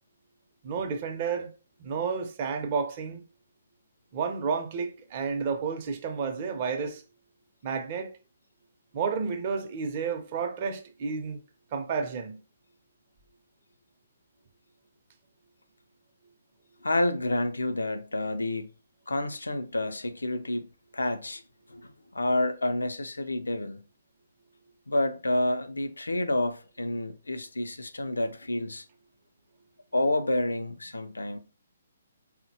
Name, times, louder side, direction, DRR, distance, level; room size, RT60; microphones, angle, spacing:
voice 1, 0.6-1.5 1.8-3.2 4.1-7.0 7.6-8.1 8.9-11.4 11.7-12.4, right 5 dB, 40° right, 0.5 m, -31 dB
voice 2, 16.8-18.7 19.1-20.7 20.9-21.4 21.7-23.8 24.9-28.8 29.9-31.4, left 1 dB, 85° left, 0.4 m, -29 dB
3.8 x 2.1 x 2.7 m
figure-of-eight pair, 135°, 0 cm